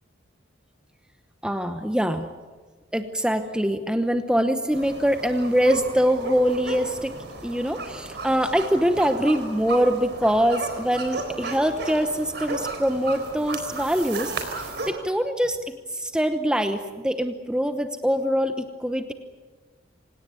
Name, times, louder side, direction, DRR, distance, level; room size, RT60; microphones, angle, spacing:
voice 1, 1.4-2.3 2.9-7.1 7.4-19.1, equal, 5° right, 7 dB, 0.9 m, -24 dB
dogs barking, 4.7-14.9, right 3 dB, 55° right, 4.0 m, -34 dB
26.0 x 18.0 x 9.5 m, 1.4 s
head